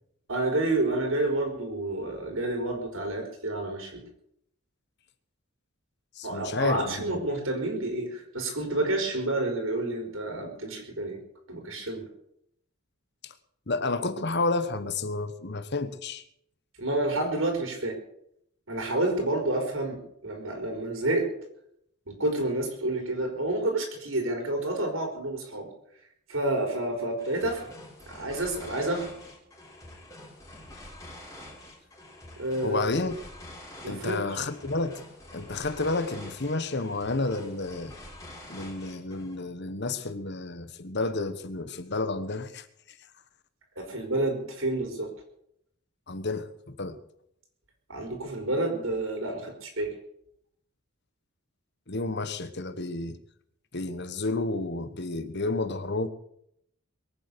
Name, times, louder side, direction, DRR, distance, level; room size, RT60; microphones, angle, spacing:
voice 1, 0.3-4.0 6.2-11.2 11.5-12.1 16.8-18.0 18.7-21.3 22.1-25.7 26.3-27.7 28.1-29.1 32.4-32.8 33.8-34.4 43.8-45.1 47.9-49.9, right 2 dB, 65° right, 3 dB, 4.4 m, -29 dB
voice 2, 6.2-7.2 13.2-13.3 13.7-16.2 32.6-33.1 33.9-35.0 35.3-37.9 38.5-42.6 46.1-47.0 51.9-53.2 53.7-56.1, left 3 dB, 50° left, 11 dB, 1.4 m, -30 dB
sound 1, 27.2-39.4, left 1 dB, 15° left, 4.0 m, -47 dB
22.5 x 9.1 x 7.0 m, 0.73 s
head